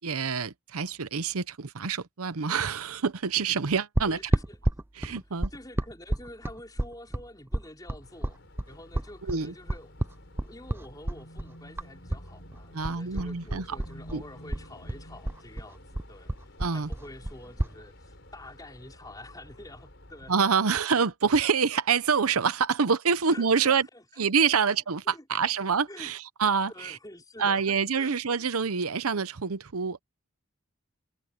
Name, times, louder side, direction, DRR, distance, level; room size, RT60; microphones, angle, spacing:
voice 1, 0.0-4.2 5.0-5.5 9.3-9.5 12.7-13.8 14.1-14.2 16.6-16.9 20.3-23.9 24.2-27.0 27.4-30.0, right 6 dB, 80° right, 0.8 m, -26 dB
voice 2, 4.0-4.6 5.5-8.4 8.7-9.9 10.4-20.4 20.7-20.8 23.3-24.2 24.6-24.8 25.0-25.3 25.8-26.1 26.7-28.5, left 1 dB, 15° left, 5.1 m, -47 dB
sound 1, 4.0-12.3 12.5-14.2 14.5-17.8, right 1 dB, 10° right, 0.4 m, -30 dB
sound 2, 8.0-20.3, equal, 55° left, 5.3 m, -50 dB
head